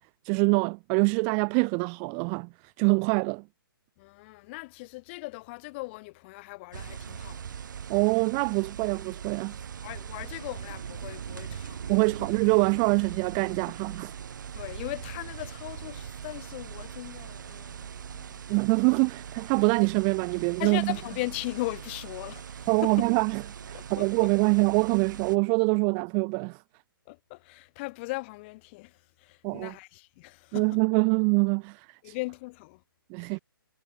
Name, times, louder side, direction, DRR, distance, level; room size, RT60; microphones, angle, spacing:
voice 1, 0.2-2.5 2.8-3.4 7.9-9.5 11.9-14.1 18.5-21.0 22.7-23.4 23.7-26.6 29.4-29.7 30.5-32.1 33.1-33.4, right 40 dB or more, 15° right, 0.3 m, -25 dB
voice 2, 4.0-7.6 9.8-11.8 14.5-18.4 20.6-23.0 23.7-24.1 27.1-30.8 32.0-32.8 33.2-33.4, left 24 dB, 30° left, 2.9 m, -38 dB
sound 1, 6.7-25.4, right 8 dB, 55° right, 1.3 m, -41 dB
figure-of-eight pair, 140°, 12 cm